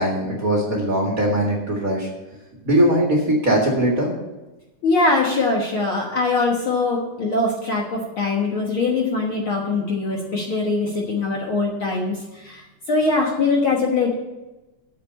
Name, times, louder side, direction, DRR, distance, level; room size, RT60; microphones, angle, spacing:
voice 1, 0.0-2.1 2.6-4.1, right 1 dB, 30° right, -1 dB, 1.9 m, -20 dB
voice 2, 4.8-14.1, left 3 dB, 50° left, -1 dB, 1.8 m, -22 dB
8.6 x 7.0 x 8.3 m, 1.1 s
omnidirectional pair, 3.6 m